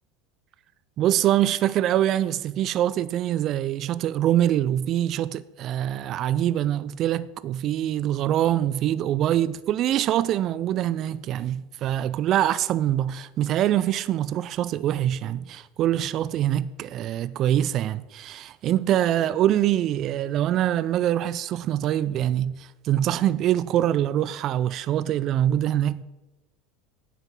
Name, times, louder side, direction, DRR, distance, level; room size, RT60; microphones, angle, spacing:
voice 1, 1.0-26.0, right 12 dB, 50° right, 0.3 m, -24 dB
9.1 x 6.0 x 5.9 m
hypercardioid pair, 85°, 0 cm